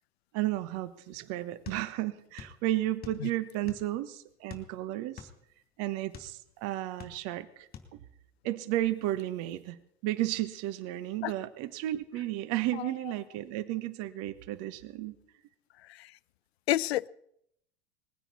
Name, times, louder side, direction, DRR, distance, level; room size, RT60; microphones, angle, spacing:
voice 1, 0.3-5.3 5.8-8.0 8.4-15.1, right 15 dB, 45° right, 14 dB, 1.2 m, -33 dB
sound 1, 1.6-2.6 2.8-4.0 4.5-6.4 6.8-7.4 7.7-7.9, left 7 dB, 25° left, 2.8 m, -46 dB
voice 2, 16.7-17.1, left 14 dB, 70° left, 22 dB, 0.6 m, -30 dB
21.0 x 16.0 x 4.2 m, 0.72 s
hypercardioid pair, 90°, 33 cm